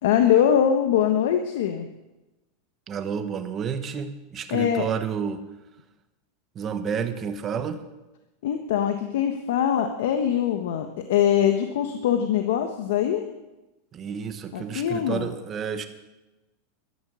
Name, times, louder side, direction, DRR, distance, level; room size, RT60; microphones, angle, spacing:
voice 1, 0.0-1.9 4.5-4.9 8.4-13.2 14.5-15.3, left 9 dB, 75° left, 6 dB, 1.3 m, -22 dB
voice 2, 2.9-5.4 6.5-7.8 13.9-15.9, right 7 dB, 20° right, 9 dB, 1.1 m, -30 dB
14.0 x 13.0 x 6.4 m, 1.0 s
supercardioid pair, 165°, 0 cm